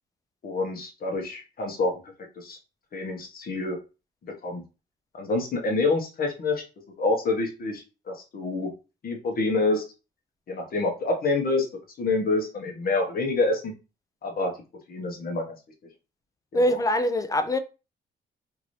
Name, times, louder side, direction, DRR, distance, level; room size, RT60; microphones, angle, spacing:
voice 1, 0.4-2.6 2.9-3.8 4.4-4.6 5.1-6.6 7.0-8.7 9.0-9.8 10.5-11.7 12.0-13.7 14.2-14.5 14.9-15.4 16.5-16.8, left 3 dB, 50° left, 1.1 m, -27 dB
voice 2, 16.5-17.6, left 1 dB, 15° left, 0.4 m, -23 dB
2.9 x 2.6 x 3.1 m
cardioid pair, 90°, 20 cm